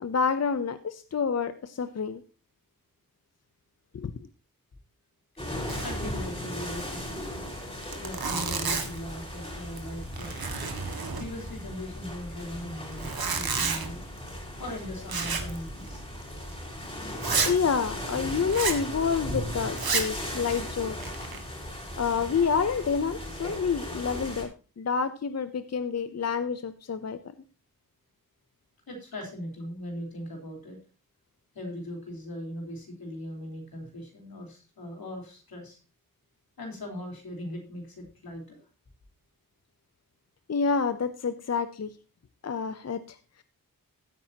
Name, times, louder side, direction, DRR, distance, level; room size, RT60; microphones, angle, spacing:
voice 1, 0.0-2.2 3.9-4.1 17.5-21.1 22.0-24.5 24.8-27.2 40.5-41.9 42.4-43.4, left 6 dB, 45° left, 11 dB, 0.7 m, -28 dB
sound 1, 5.4-24.4, left 1 dB, 15° left, 4.3 m, -37 dB
Zipper (clothing), 5.7-6.1 6.3-6.4 6.8-6.9 7.5-7.6 7.8-9.1 9.6-9.9 10.1-11.6 12.9-13.9 15.1-15.6 15.9-16.0 16.5-16.6 17.2-17.6 18.5-18.8 19.7-20.2 20.8-21.4, right 5 dB, 85° right, 1.8 m, -30 dB
voice 2, 5.8-7.3 8.0-10.5 11.2-14.0 14.6-16.0 28.9-30.8 31.5-35.8 36.6-38.6, left 1 dB, 80° left, 1 dB, 4.0 m, -39 dB
15.0 x 8.7 x 2.9 m, 0.34 s
wide cardioid pair, 90°, 35 cm